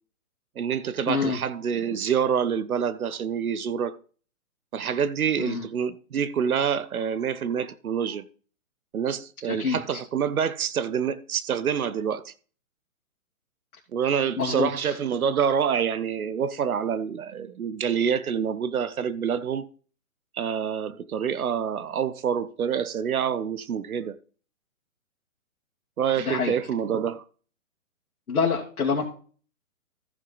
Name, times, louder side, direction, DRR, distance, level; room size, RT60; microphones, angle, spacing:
voice 1, 0.6-4.0 4.7-8.3 8.9-12.3 13.9-19.7 20.3-24.2 26.0-27.2, right 7 dB, 75° right, 1.0 m, -27 dB
voice 2, 1.1-1.4 5.4-5.7 9.5-10.0 14.4-15.0 26.2-26.6 28.3-29.1, left 5 dB, 80° left, 2.3 m, -27 dB
14.5 x 6.3 x 4.0 m
hypercardioid pair, 160°, 43 cm